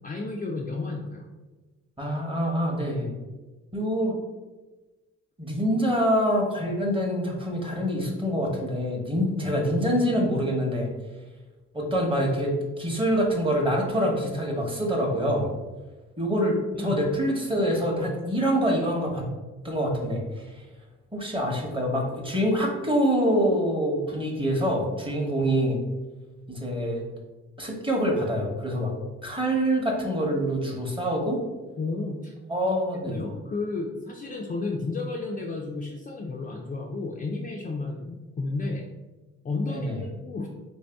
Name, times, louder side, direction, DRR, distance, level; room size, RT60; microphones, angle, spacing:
voice 1, 0.0-1.3 16.7-17.0 31.8-32.3 33.0-38.9 39.4-39.9 40.2-40.5, left 3 dB, 30° left, 0 dB, 0.4 m, -32 dB
voice 2, 2.0-3.1 3.7-4.1 5.4-10.9 11.7-15.5 16.2-19.3 19.6-20.5 21.1-25.8 26.5-27.0 27.6-28.9 29.2-31.4 32.5-33.2 39.7-40.0, equal, 15° right, 0 dB, 0.9 m, -25 dB
3.2 x 2.7 x 3.4 m, 1.2 s
cardioid pair, 90°, 30 cm